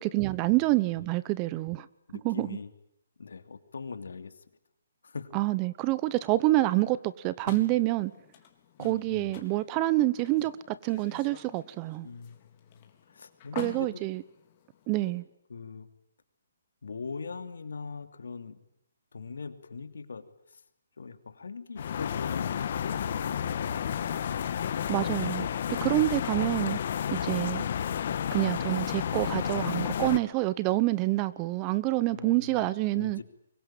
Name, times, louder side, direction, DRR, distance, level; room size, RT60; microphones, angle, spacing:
voice 1, 0.0-1.9 2.2-2.6 5.3-8.1 8.8-12.1 13.6-14.2 14.9-15.2 24.9-25.5 25.8-26.8 27.1-27.7 28.3-33.2, right 18 dB, 25° right, 0.9 m, -27 dB
voice 2, 2.1-2.7 3.2-4.4 5.0-5.4 8.8-9.3 12.0-14.0 14.9-15.1 15.5-15.9 16.8-18.6 19.1-20.6 21.0-23.9 32.1-32.7 32.9-33.2, left 5 dB, 80° left, 2.8 m, -42 dB
sound 1, 7.5-15.2, left 10 dB, 35° left, 3.8 m, -48 dB
sound 2, 21.8-30.2, left 9 dB, 50° left, 1.7 m, -31 dB
24.0 x 22.5 x 9.0 m
hypercardioid pair, 155°, 0 cm